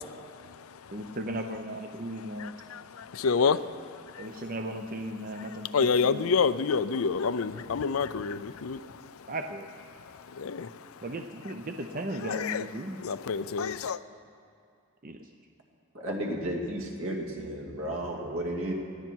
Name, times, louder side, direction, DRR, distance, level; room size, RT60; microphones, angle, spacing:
voice 1, 0.0-1.1 2.4-4.4 5.7-9.2 10.1-10.9 12.2-12.7 13.0-14.0, left 5 dB, 80° left, 14 dB, 0.5 m, -29 dB
voice 2, 0.9-2.5 4.2-6.3 9.3-9.7 11.0-13.0 15.0-15.3, right 1 dB, 40° right, 5 dB, 0.6 m, -36 dB
voice 3, 15.9-18.7, right 1 dB, 75° right, 0 dB, 2.5 m, -33 dB
20.0 x 15.0 x 4.6 m, 2.4 s
head